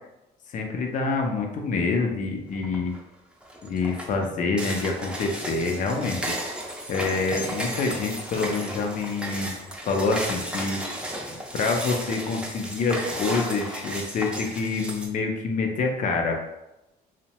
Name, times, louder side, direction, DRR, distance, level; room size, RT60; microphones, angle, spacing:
voice 1, 0.5-2.9 3.6-6.2 6.9-9.6 9.8-10.8 11.5-16.4, left 4 dB, 50° left, 2 dB, 0.5 m, -26 dB
sound 1, 2.6-3.0 3.4-15.1, right 1 dB, 5° right, 0.5 m, -34 dB
2.6 x 2.1 x 2.9 m, 0.92 s
cardioid pair, 110°, 17 cm